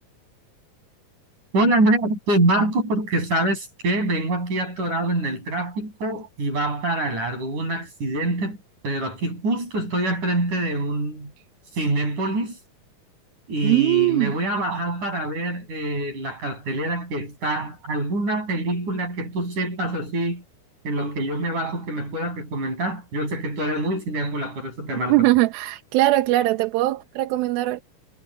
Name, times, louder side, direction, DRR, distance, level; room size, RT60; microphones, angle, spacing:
voice 1, 1.5-8.6 8.8-11.3 11.8-12.6 13.5-20.4 20.8-25.3, right 1 dB, 55° right, 9.1 m, -25 dB
voice 2, 13.6-14.4 25.1-27.8, right 17 dB, 85° right, 2.7 m, -20 dB
omnidirectional pair, 4.2 m